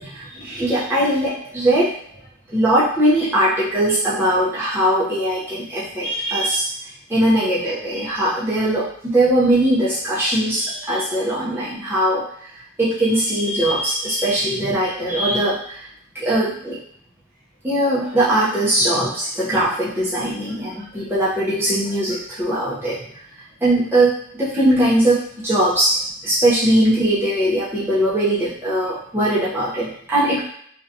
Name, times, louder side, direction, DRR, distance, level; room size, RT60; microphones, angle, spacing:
voice 1, 0.0-1.9 2.5-6.7 7.1-12.2 12.8-15.8 16.1-16.8 17.6-23.0 23.6-30.5, right 1 dB, 10° right, -10 dB, 0.5 m, -20 dB
2.6 x 2.2 x 2.6 m, 0.65 s
head